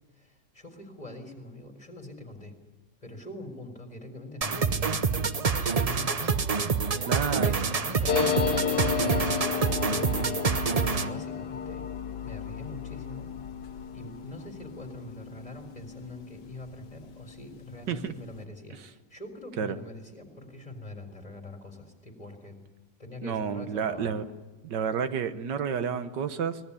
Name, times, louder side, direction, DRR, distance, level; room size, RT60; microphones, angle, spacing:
voice 1, 0.1-2.6 3.0-6.6 7.3-10.3 10.9-11.9 12.2-13.3 13.9-22.6 23.0-24.2, left 1 dB, 20° left, 5 dB, 3.9 m, -44 dB
sound 1, 4.4-11.2, right 5 dB, 35° right, 0.6 m, -27 dB
voice 2, 7.1-7.7 17.9-18.1 19.6-19.8 23.2-24.3 24.6-26.6, right 7 dB, 90° right, 10 dB, 1.8 m, -30 dB
sound 2, 8.1-17.2 17.5-17.6 17.8-18.4, left 8 dB, 90° left, 1.7 m, -33 dB
24.5 x 19.0 x 9.9 m, 1.2 s
omnidirectional pair, 1.8 m